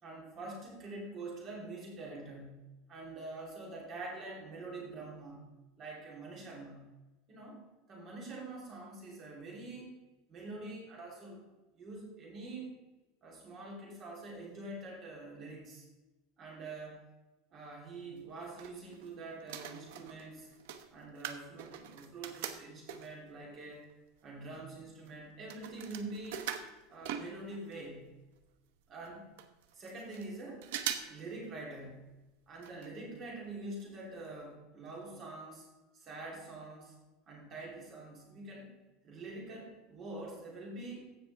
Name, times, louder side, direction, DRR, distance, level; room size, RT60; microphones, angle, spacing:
voice 1, 0.0-5.5 5.8-6.9 7.3-7.6 7.9-10.0 10.3-11.4 11.7-12.7 13.2-15.9 16.4-17.0 17.5-20.5 20.9-23.9 24.2-26.5 26.9-28.1 28.9-29.2 29.7-30.7 31.0-32.1 32.5-35.7 35.9-37.0 37.3-38.7 39.0-41.1, right 2 dB, 30° right, -2 dB, 3.2 m, -45 dB
sound 1, 18.2-19.1 19.4-23.3 23.9-24.0 24.2-27.8 28.1-28.2 28.4-28.5 29.0-29.1 29.4-30.3 30.6-31.2 31.5-31.6 32.6-32.9 33.2-33.3 33.8-33.9 34.3-34.4, right 9 dB, 75° right, 0.9 m, -42 dB
15.5 x 6.0 x 3.4 m, 1.1 s
supercardioid pair, 160°, 0 cm